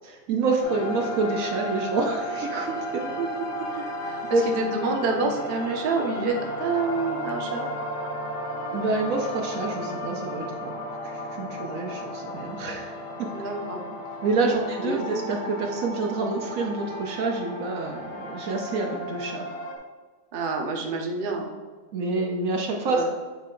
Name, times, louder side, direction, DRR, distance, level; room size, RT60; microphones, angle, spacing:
voice 1, 0.0-3.0 3.7-3.8 4.3-4.4 8.7-13.3 14.2-19.5 21.9-23.1, right 3 dB, 65° right, 2 dB, 1.0 m, -27 dB
sound 1, 0.6-19.8, equal, 55° left, 0.9 m, -34 dB
voice 2, 3.0-3.5 3.8-7.7 13.3-13.8 14.5-15.0 20.3-21.5 22.8-23.1, right 3 dB, 45° right, 1 dB, 0.8 m, -28 dB
8.4 x 3.3 x 3.8 m, 1.4 s
omnidirectional pair, 1.6 m